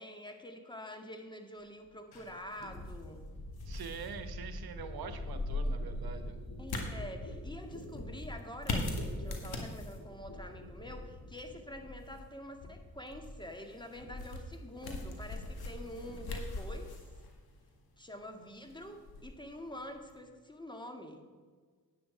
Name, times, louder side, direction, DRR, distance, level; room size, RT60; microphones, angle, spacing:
voice 1, 0.0-3.3 6.6-8.9 9.2-16.9 18.0-21.3, left 1 dB, 10° left, 5 dB, 1.9 m, -46 dB
sound 1, 1.8-1.9 2.6-12.3 12.6-13.4 13.7-14.6 14.8-15.3, left 1 dB, 55° left, 3.2 m, -46 dB
sound 2, 2.1-20.2, left 2 dB, 75° left, 1.9 m, -42 dB
voice 2, 3.6-6.4, right 6 dB, 70° right, 9 dB, 1.1 m, -44 dB
9.9 x 9.1 x 5.1 m, 1.5 s
supercardioid pair, 45°, 38 cm